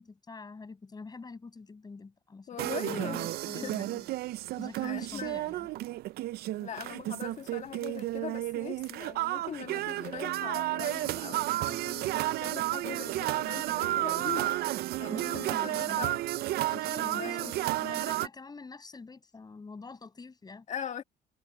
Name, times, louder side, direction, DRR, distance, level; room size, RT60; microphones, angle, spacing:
voice 1, 0.0-2.5 2.8-4.1 4.6-5.7 15.1-16.1 16.7-20.7, left 4 dB, 25° left, 6.2 m, -45 dB
voice 2, 2.5-3.4 3.6-3.8 4.8-5.4 6.6-14.6 15.0-16.2 17.0-17.8 20.7-21.0, left 8 dB, 45° left, 1.8 m, -41 dB
sound 1, 2.6-18.3, right 16 dB, 65° right, 0.4 m, -32 dB
cardioid pair, 110°, 17 cm